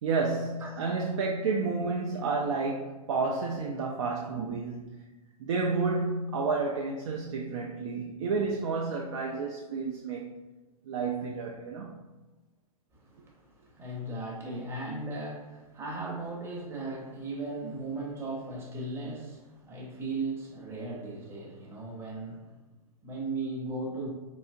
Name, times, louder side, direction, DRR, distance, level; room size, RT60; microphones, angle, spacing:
voice 1, 0.0-4.9 5.4-10.3 10.9-12.0, right 4 dB, 50° right, 0.4 m, -30 dB
voice 2, 12.9-22.5 23.0-24.1, right 2 dB, 10° right, 0.8 m, -37 dB
3.9 x 2.8 x 2.5 m
figure-of-eight pair, 105°, 20 cm